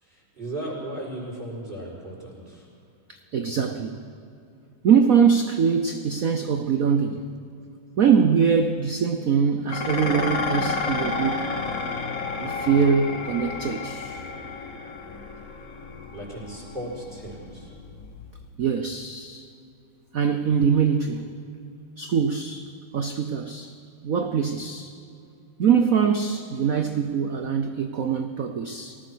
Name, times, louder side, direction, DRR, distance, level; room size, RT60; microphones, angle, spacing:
voice 1, 0.0-2.7 16.1-17.7, right 1 dB, 20° right, 6.2 m, -36 dB
voice 2, 3.1-4.0 4.8-7.3 8.0-11.5 12.4-14.2 18.6-19.5 20.1-21.3 22.0-22.7 22.9-23.7 24.0-24.9 25.6-29.0, right 6 dB, 60° right, 0.9 m, -23 dB
Dishes pots and pans, 9.7-18.5, left 4 dB, 45° left, 1.7 m, -31 dB
24.0 x 18.5 x 6.3 m
omnidirectional pair, 2.4 m